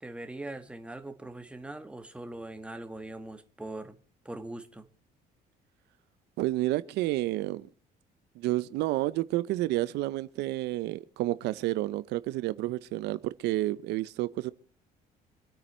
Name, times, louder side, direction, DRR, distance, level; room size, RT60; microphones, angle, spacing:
voice 1, 0.0-4.0 4.3-4.8, right 2 dB, 5° right, 1.7 m, -41 dB
voice 2, 6.4-7.7 8.4-14.5, right 16 dB, 85° right, 0.7 m, -30 dB
25.5 x 9.0 x 4.4 m
cardioid pair, 110°, 17 cm